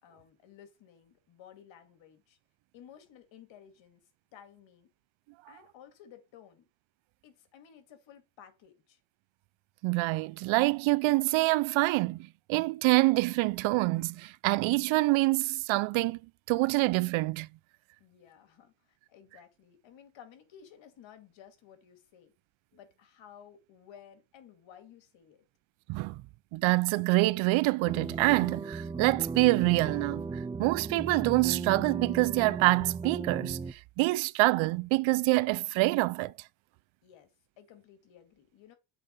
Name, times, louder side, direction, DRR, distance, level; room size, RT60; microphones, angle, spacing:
voice 1, 0.0-2.4 2.7-4.0 4.3-4.9 5.5-6.7 7.2-9.0 18.0-22.3 22.7-25.4 37.0-37.3 37.6-38.7, left 9 dB, 65° left, 2.2 m, -55 dB
voice 2, 9.8-16.2 16.5-17.5 25.9-26.2 26.5-30.2 30.6-36.3, right 22 dB, 70° right, 0.6 m, -26 dB
sound 1, 27.9-33.7, right 4 dB, 10° right, 0.3 m, -37 dB
7.7 x 3.8 x 5.3 m
supercardioid pair, 90°, 49 cm